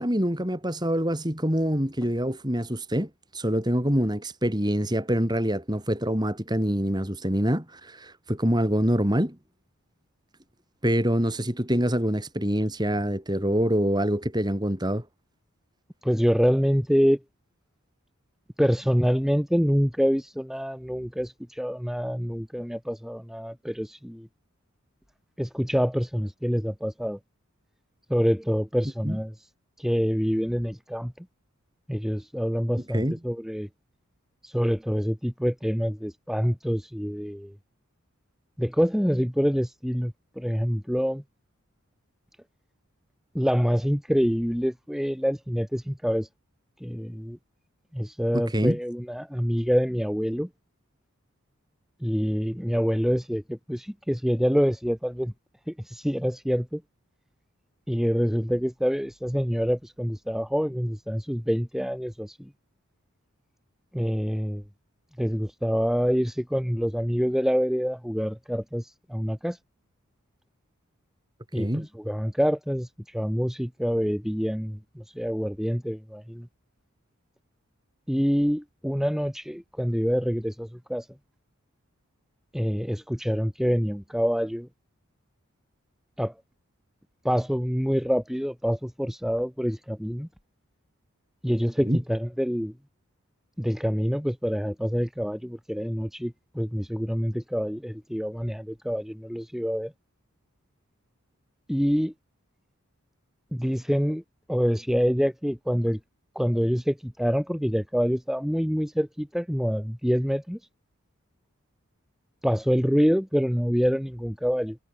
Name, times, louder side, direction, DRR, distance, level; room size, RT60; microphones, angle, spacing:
voice 1, 0.0-9.4 10.8-15.0 29.0-29.2 32.9-33.2 48.3-48.8 71.6-71.9 91.8-92.0, equal, 20° right, 4.8 m, -25 dB
voice 2, 16.0-17.2 18.6-24.3 25.4-27.2 28.1-29.3 29.8-31.3 31.9-33.7 34.4-37.5 38.6-41.2 43.3-46.3 46.8-47.4 47.9-50.5 52.0-55.3 55.7-56.8 57.9-62.5 63.9-64.6 65.2-69.6 71.5-76.5 78.1-81.1 82.5-84.7 86.2-86.3 87.2-90.3 91.4-92.7 93.6-99.9 101.7-102.1 103.5-104.2 104.5-106.0 106.4-110.6 112.4-114.8, equal, ahead, 3.4 m, -26 dB
head